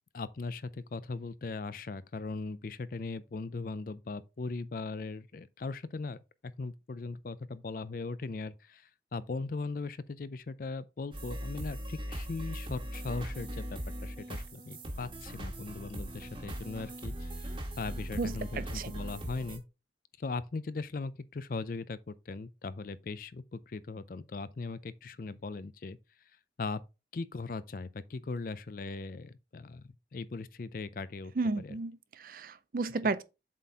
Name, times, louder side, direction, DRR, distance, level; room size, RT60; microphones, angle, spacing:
voice 1, 0.1-6.2 6.4-13.6 14.0-19.6 20.2-26.0 26.6-26.8 27.1-31.3 31.6-31.8, left 3 dB, 50° left, 0.4 m, -39 dB
sound 1, 11.1-19.6, equal, 30° right, 1.3 m, -40 dB
voice 2, 18.2-18.9 31.4-33.2, right 3 dB, 50° right, 0.5 m, -33 dB
7.5 x 4.2 x 3.4 m
head